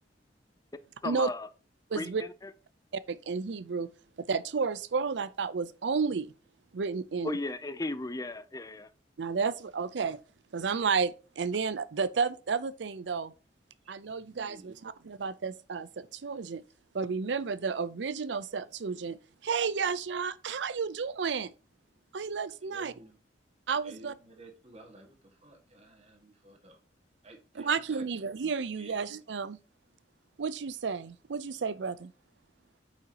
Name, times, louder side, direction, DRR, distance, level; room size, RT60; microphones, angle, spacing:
voice 1, 1.0-1.5 2.0-2.3 7.2-8.9, left 2 dB, 20° left, 0.5 m, -35 dB
voice 2, 1.9-2.2 2.9-3.9 4.2-6.3 6.7-7.4 9.2-10.2 10.5-13.3 13.9-16.6 16.9-19.2 19.4-21.5 22.1-22.9 23.7-24.1 27.5-29.6 30.4-32.1, right 5 dB, 75° right, 0.5 m, -32 dB
voice 3, 14.2-14.7 22.6-23.2 23.8-26.8 27.2-28.1 28.8-28.9, right 2 dB, 35° right, 1.8 m, -53 dB
9.1 x 5.6 x 2.8 m
head